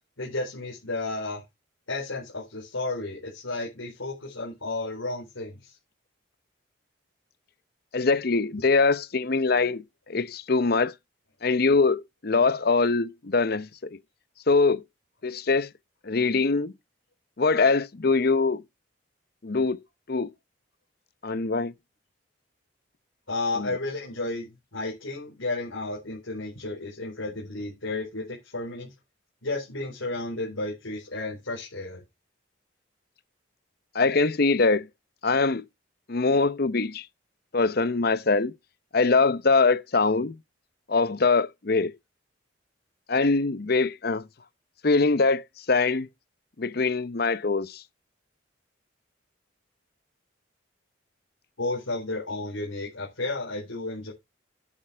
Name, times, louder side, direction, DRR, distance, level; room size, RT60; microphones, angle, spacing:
voice 1, 0.2-1.4 1.9-5.7 23.3-28.9 29.4-32.0 51.6-54.1, left 2 dB, 90° left, 4.2 m, -32 dB
voice 2, 7.9-10.9 11.4-13.7 14.5-14.8 15.2-15.7 16.0-16.7 17.4-18.6 19.4-19.8 20.1-20.3 21.2-21.7 23.6-23.7 33.9-34.9 35.2-35.6 36.1-37.1 37.5-38.5 38.9-40.4 40.9-41.9 43.1-44.2 44.8-46.1 46.6-47.8, left 4 dB, 50° left, 0.7 m, -23 dB
11.0 x 9.0 x 3.4 m
head